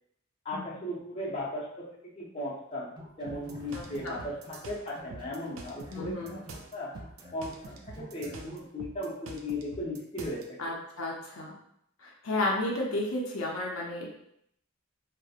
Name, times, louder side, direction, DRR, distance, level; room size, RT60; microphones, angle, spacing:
voice 1, 0.4-1.9 2.2-2.9 3.2-6.4 6.7-6.9 7.3-10.6, left 1 dB, 30° left, -6 dB, 0.6 m, -36 dB
sound 1, 2.9-4.7 4.9-8.7, equal, 20° right, 0.4 m, -49 dB
sound 2, 3.3-10.5, right 3 dB, 85° right, 0.4 m, -46 dB
voice 2, 3.7-4.2 5.9-6.4 10.6-11.5 12.0-14.1, left 2 dB, 85° left, -2 dB, 0.6 m, -33 dB
2.7 x 2.0 x 2.4 m, 0.74 s
head